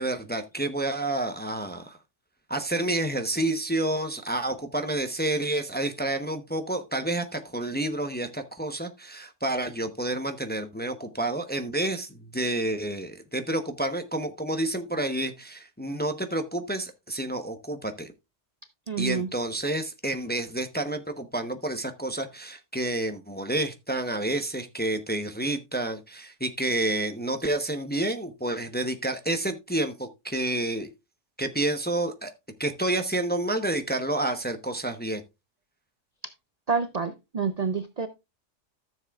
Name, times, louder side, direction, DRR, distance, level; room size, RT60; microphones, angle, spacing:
voice 1, 0.0-2.0 2.5-18.1 19.0-30.9 31.4-32.3 32.6-35.2, right 1 dB, 10° left, 0.7 m, -29 dB
voice 2, 18.9-19.3 36.7-38.1, right 5 dB, 45° right, 0.5 m, -28 dB
13.5 x 7.3 x 2.3 m
omnidirectional pair, 1.3 m